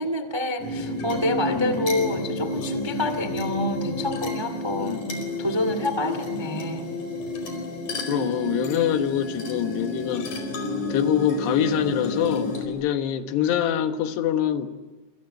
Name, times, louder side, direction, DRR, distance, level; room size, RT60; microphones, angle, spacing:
voice 1, 0.0-5.1 5.4-6.9, left 1 dB, 20° right, 0.7 m, -27 dB
sound 1, 0.6-12.7, left 2 dB, 50° left, 6.0 m, -30 dB
voice 2, 1.5-1.9 4.8-5.0 8.1-10.3 10.9-14.7, left 10 dB, 90° left, 3.5 m, -25 dB
27.5 x 26.5 x 7.9 m
omnidirectional pair, 4.7 m